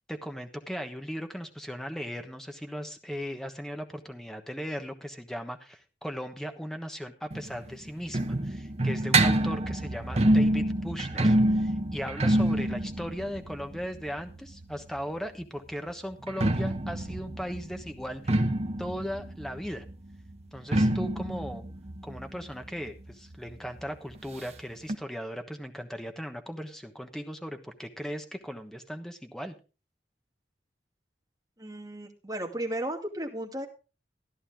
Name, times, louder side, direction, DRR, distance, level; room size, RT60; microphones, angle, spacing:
voice 1, 0.1-18.2 18.8-19.8 20.5-21.6 22.0-29.5, equal, 5° left, 5 dB, 1.2 m, -37 dB
sound 1, 7.3-15.0 16.1-23.5 23.8-23.9 24.1-24.2 24.9-25.0, right 1 dB, 35° right, 1.0 m, -27 dB
voice 2, 31.6-33.7, right 1 dB, 20° right, 1 dB, 2.4 m, -34 dB
14.0 x 11.0 x 3.6 m, 0.33 s
head